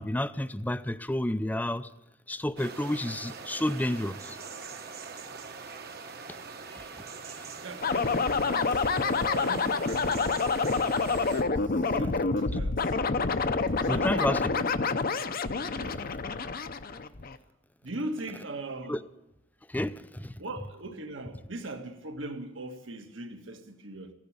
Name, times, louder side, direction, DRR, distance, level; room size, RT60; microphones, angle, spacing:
voice 1, 0.0-1.9 2.3-4.4 6.3-6.4 6.7-6.8 13.9-14.4 18.9-19.0 19.7-20.3, left 1 dB, 10° left, 0.5 m, -30 dB
sound 1, 2.6-11.4, right 4 dB, 50° right, 1.3 m, -42 dB
voice 2, 7.6-9.1 9.4-10.4 11.7-12.9 13.8-14.7 15.5-16.1 17.8-19.0 20.4-24.1, right 2 dB, 65° right, 1.6 m, -40 dB
sound 2, 7.8-17.4, left 4 dB, 45° left, 0.7 m, -28 dB
15.0 x 10.5 x 8.7 m
head